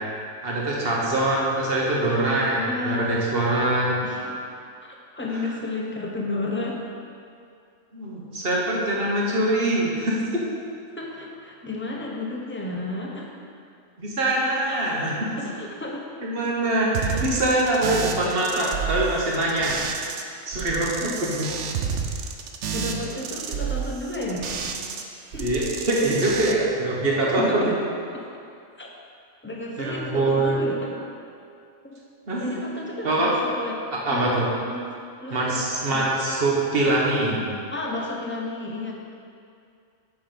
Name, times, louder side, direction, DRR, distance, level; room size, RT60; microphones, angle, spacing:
voice 1, 0.4-4.0 5.3-5.4 7.9-10.2 14.0-15.1 16.2-19.7 20.5-21.5 25.4-27.7 29.8-30.6 32.3-32.6 33.0-33.3 34.0-34.4 35.3-37.5, right 2 dB, 50° right, -4 dB, 1.5 m, -23 dB
voice 2, 2.5-3.2 4.0-4.4 4.8-6.8 11.0-13.4 14.7-14.8 15.4-16.2 17.1-17.2 21.0-21.3 22.7-24.5 24.8-25.0 25.3-25.5 27.3-27.7 28.1-28.2 28.8-28.9 29.4-30.9 31.8-32.0 32.4-33.8 34.0-34.8 35.2-35.6 35.9-36.1 37.7-38.9, left 2 dB, 10° left, -2 dB, 0.7 m, -32 dB
sound 1, 16.9-20.2 20.5-25.0 25.3-26.5, right 7 dB, 70° right, 0.9 m, -30 dB
6.9 x 5.9 x 5.0 m, 2.4 s
omnidirectional pair, 1.4 m